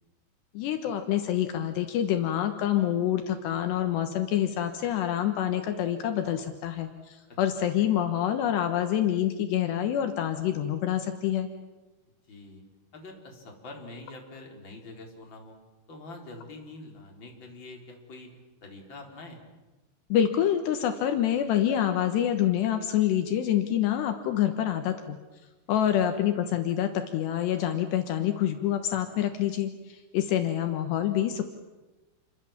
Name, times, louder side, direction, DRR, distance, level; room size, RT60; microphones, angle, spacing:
voice 1, 0.5-11.5 20.1-25.2 25.7-31.5, left 10 dB, 75° left, 6 dB, 3.4 m, -27 dB
voice 2, 7.3-7.6 12.3-12.6 12.9-15.6 15.9-18.3 18.6-19.4 25.7-26.0, left 2 dB, 25° left, 1 dB, 4.6 m, -45 dB
29.0 x 24.5 x 7.3 m, 1.1 s
omnidirectional pair, 5.0 m